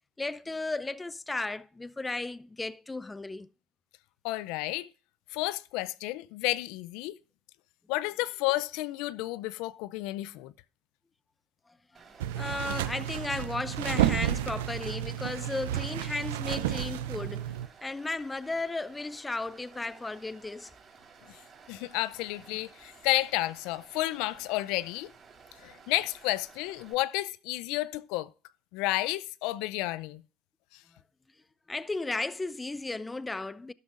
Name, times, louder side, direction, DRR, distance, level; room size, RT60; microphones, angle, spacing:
voice 1, 0.2-3.5 11.9-12.0 12.4-17.5 17.8-20.7 31.7-33.7, left 3 dB, 15° left, 0.5 m, -35 dB
voice 2, 4.2-4.9 5.3-7.2 7.9-10.5 21.3-21.4 21.7-25.1 25.6-28.3 28.7-30.2 30.7-30.8, left 18 dB, 75° left, 0.4 m, -31 dB
Stream, 11.9-26.9, right 5 dB, 35° right, 4.3 m, -55 dB
sound 1, 12.2-17.7, right 12 dB, 90° right, 0.5 m, -31 dB
12.5 x 11.5 x 2.5 m
supercardioid pair, 85°, 0 cm